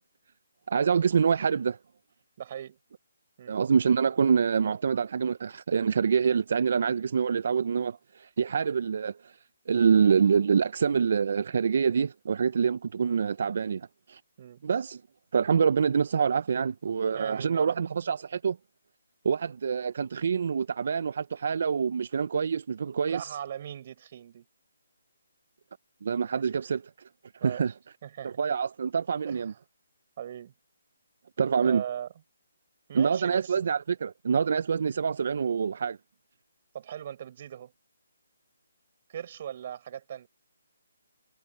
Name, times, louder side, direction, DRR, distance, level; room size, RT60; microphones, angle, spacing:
voice 1, 0.7-1.8 3.5-14.2 14.6-15.0 15.3-18.6 19.2-23.4 26.0-26.8 27.4-27.7 28.2-29.5 31.4-31.8 32.9-36.0, right 6 dB, 55° right, 0.6 m, -26 dB
voice 2, 2.4-2.8 3.4-3.6 14.4-14.7 17.1-17.8 23.1-24.4 26.3-26.4 27.4-27.7 28.0-28.4 29.2-29.6 30.2-30.5 31.5-32.1 32.9-33.6 36.7-37.7 39.1-40.3, right 10 dB, 40° right, 6.6 m, -39 dB
hypercardioid pair, 155°, 0 cm